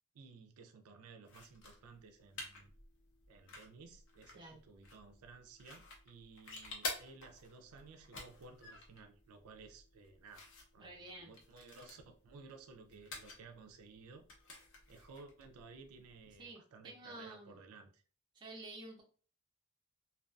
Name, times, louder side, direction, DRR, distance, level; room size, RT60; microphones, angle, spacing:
voice 1, 0.1-2.7 3.3-10.5 10.7-14.2 14.9-18.0, right 4 dB, 80° right, 5 dB, 0.4 m, -56 dB
sound 1, 1.2-16.4, left 3 dB, 55° left, 0.6 m, -51 dB
voice 2, 10.8-11.4 16.4-17.6 18.3-19.0, right 2 dB, 20° right, -1 dB, 0.5 m, -51 dB
2.3 x 2.2 x 2.4 m, 0.40 s
head